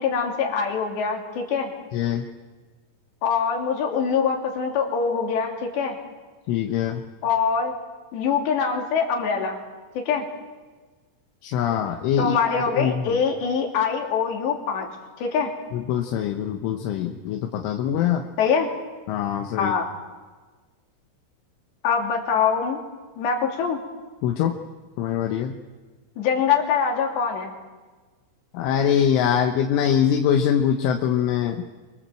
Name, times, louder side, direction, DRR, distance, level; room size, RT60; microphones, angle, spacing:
voice 1, 0.0-1.7 3.2-6.0 7.2-7.7 8.1-9.6 9.9-10.2 12.2-14.9 15.2-15.5 18.4-18.7 19.6-19.9 21.8-22.8 23.2-23.8 26.2-27.5, left 6 dB, 65° left, 1 dB, 5.1 m, -23 dB
voice 2, 1.9-2.3 6.5-7.0 11.4-13.2 15.7-18.2 19.1-19.7 24.2-24.5 25.0-25.6 28.5-31.6, left 9 dB, 80° left, 3 dB, 3.6 m, -23 dB
26.5 x 24.0 x 7.7 m, 1.4 s
omnidirectional pair, 5.6 m